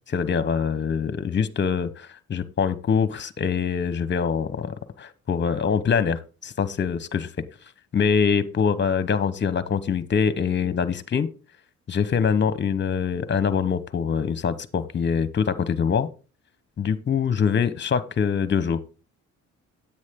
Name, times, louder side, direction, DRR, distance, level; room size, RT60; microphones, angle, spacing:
voice 1, 0.1-7.3 7.9-11.3 11.9-16.1 16.8-18.8, left 6 dB, 35° left, 15 dB, 1.1 m, -24 dB
9.6 x 8.5 x 3.7 m, 0.33 s
cardioid pair, 90°, 30 cm